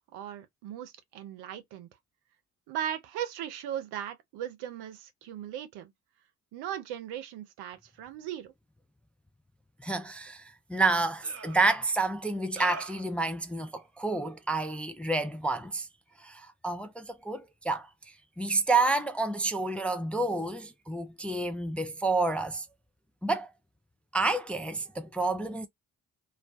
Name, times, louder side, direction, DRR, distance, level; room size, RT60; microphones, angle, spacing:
voice 1, 0.1-1.9 2.7-5.9 6.5-8.5, right 10 dB, 70° right, 0.7 m, -38 dB
voice 2, 9.8-10.4 10.7-15.9 16.2-17.9 18.4-22.7 23.2-23.5 24.1-25.7, right 3 dB, 5° left, 0.4 m, -29 dB
sound 1, 10.3-10.4 11.2-11.6 12.6-13.1, right 4 dB, 35° right, 0.8 m, -41 dB
2.3 x 2.2 x 2.4 m
hypercardioid pair, 45°, 40 cm